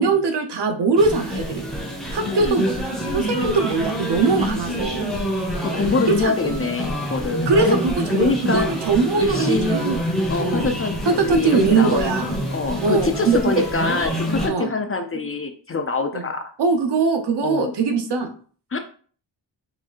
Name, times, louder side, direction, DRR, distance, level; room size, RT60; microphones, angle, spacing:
voice 1, 0.0-1.7 2.1-2.8 3.1-5.2 6.1-6.6 7.5-10.0 10.4-10.7 11.1-12.2 12.8-13.6 14.5-14.7 16.1-16.2 16.6-18.3, right 4 dB, 65° right, 6 dB, 0.9 m, -21 dB
sound 1, 1.0-14.5, equal, ahead, 1.3 m, -26 dB
voice 2, 2.2-2.6 5.6-7.8 8.1-8.7 9.2-9.8 10.3-16.5 17.4-17.7 18.7-18.8, left 4 dB, 30° left, 6 dB, 0.5 m, -25 dB
4.7 x 4.3 x 2.5 m, 0.43 s
wide cardioid pair, 150°, 45 cm